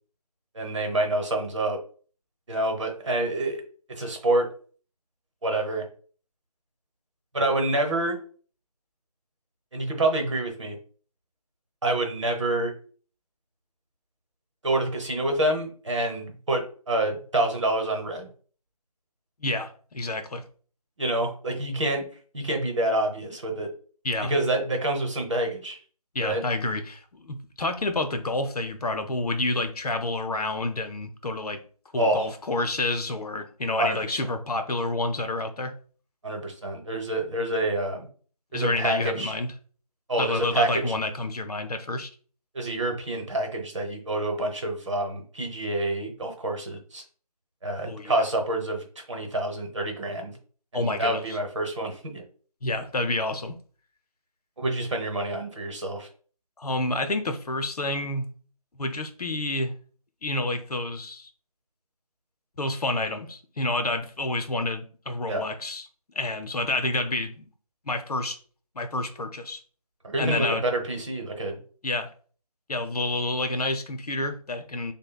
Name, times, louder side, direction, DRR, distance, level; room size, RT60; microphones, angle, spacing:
voice 1, 0.5-1.8 2.5-3.6 3.9-4.5 5.4-5.8 7.3-8.2 9.7-10.8 11.8-12.7 14.6-18.3 21.0-22.0 22.3-23.7 24.2-25.8 26.2-26.4 32.0-32.3 33.8-34.2 36.2-38.1 38.5-39.3 40.1-40.9 42.5-47.0 47.6-50.4 50.7-52.2 54.6-56.1 65.3-65.4 70.0-71.6, right 1 dB, 50° right, 3 dB, 1.0 m, -27 dB
voice 2, 19.4-20.4 24.0-24.3 26.1-31.6 31.9-35.7 38.5-39.5 40.2-42.1 47.8-48.3 50.7-51.2 52.6-53.6 56.6-58.3 58.7-59.7 60.2-61.3 62.6-65.9 66.1-67.5 67.8-68.4 68.7-69.6 70.2-70.6 71.8-72.1 72.7-74.9, left 2 dB, 85° left, 7 dB, 0.7 m, -29 dB
6.3 x 2.2 x 2.3 m, 0.43 s
figure-of-eight pair, 170°, 19 cm